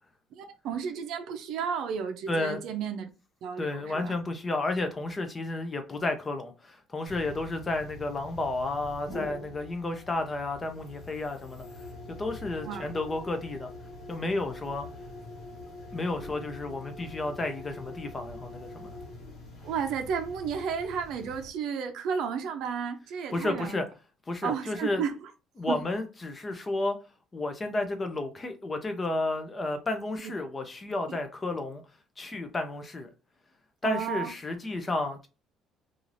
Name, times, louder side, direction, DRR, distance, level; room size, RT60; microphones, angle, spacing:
voice 1, 0.3-3.1 3.4-4.2 12.6-12.9 19.6-23.8 24.4-25.1 25.7-25.8 30.2-30.3 31.1-31.2 33.8-34.3, right 7 dB, 65° right, 0.5 m, -33 dB
voice 2, 2.3-2.6 3.6-11.6 12.1-13.7 14.1-14.9 15.9-19.0 23.3-23.9 24.3-25.0 25.6-27.0 27.3-31.8 32.2-33.1 33.8-35.3, left 2 dB, 15° left, 0.4 m, -32 dB
sound 1, 7.1-21.5, left 2 dB, 45° left, 1.1 m, -44 dB
2.6 x 2.4 x 3.1 m
cardioid pair, 170°, 0 cm